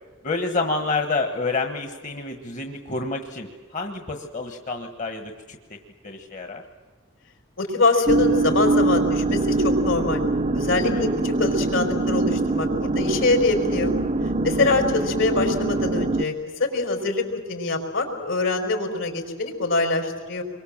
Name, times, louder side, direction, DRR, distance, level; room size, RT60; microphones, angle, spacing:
voice 1, 0.2-5.8 6.0-6.6 10.8-11.1, left 3 dB, 40° left, 4 dB, 1.4 m, -29 dB
voice 2, 7.6-10.2 10.5-13.9 14.4-20.4, left 3 dB, 75° left, 4 dB, 4.7 m, -24 dB
sound 1, 8.1-16.2, right 2 dB, 30° right, 0.6 m, -23 dB
26.5 x 23.0 x 7.4 m, 1.5 s
head